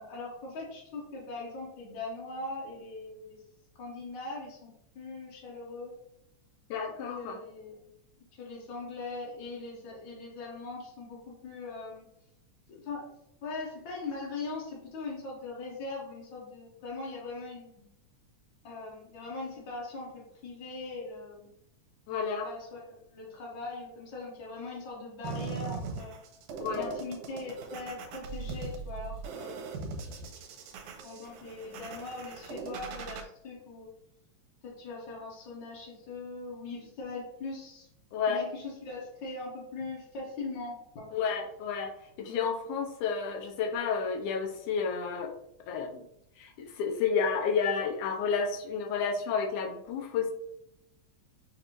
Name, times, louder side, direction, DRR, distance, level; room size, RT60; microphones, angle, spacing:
voice 1, 0.0-3.4 3.7-5.9 7.1-7.8 8.3-12.0 12.7-13.1 13.4-17.8 18.6-21.5 22.4-26.1 26.7-29.7 31.0-33.9 34.6-37.9 38.3-41.1, left 3 dB, 65° left, -4 dB, 1.2 m, -41 dB
voice 2, 6.7-7.4 22.1-22.5 26.6-26.9 38.1-38.4 41.1-45.3 45.7-46.1 46.4-50.3, left 6 dB, 90° left, 3 dB, 2.2 m, -31 dB
sound 1, 25.2-33.2, right 5 dB, 85° right, 2.0 m, -40 dB
6.4 x 2.6 x 3.0 m, 0.76 s
omnidirectional pair, 3.4 m